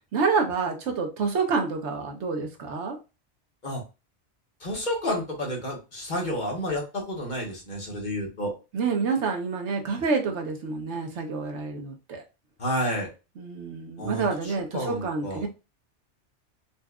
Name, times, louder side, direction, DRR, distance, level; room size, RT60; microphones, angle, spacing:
voice 1, 0.1-3.0 8.7-12.2 13.4-15.5, right 4 dB, 70° right, 3 dB, 1.0 m, -28 dB
voice 2, 4.6-8.5 12.6-13.1 14.0-15.4, equal, 40° left, -1 dB, 1.2 m, -30 dB
4.1 x 2.4 x 2.3 m, 0.29 s
omnidirectional pair, 1.2 m